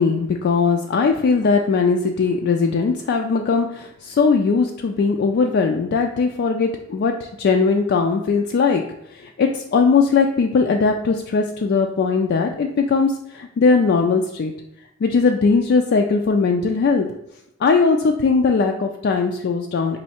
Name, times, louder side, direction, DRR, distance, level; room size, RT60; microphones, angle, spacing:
voice 1, 0.0-8.8 9.1-14.5 15.0-17.1 17.6-20.0, left 4 dB, 50° left, 3 dB, 0.3 m, -19 dB
4.2 x 2.7 x 4.2 m, 0.83 s
head